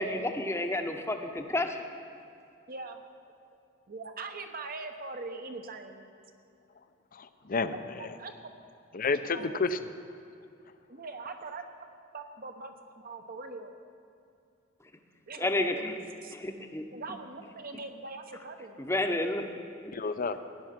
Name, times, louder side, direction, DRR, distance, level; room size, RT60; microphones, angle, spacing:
voice 1, 0.0-1.7 15.4-15.9 16.3-16.8 18.8-19.4, left 1 dB, 15° left, 5 dB, 0.9 m, -30 dB
voice 2, 2.7-3.0 3.9-6.0 8.0-8.3 9.3-9.7 10.9-11.6 12.1-13.7 15.3-15.9 16.2-16.4 16.9-18.8, right 3 dB, 45° right, 6 dB, 1.1 m, -42 dB
voice 3, 7.1-8.1 8.9-9.8 19.9-20.4, left 4 dB, 45° left, 11 dB, 0.7 m, -30 dB
16.5 x 10.5 x 6.0 m, 2.5 s
head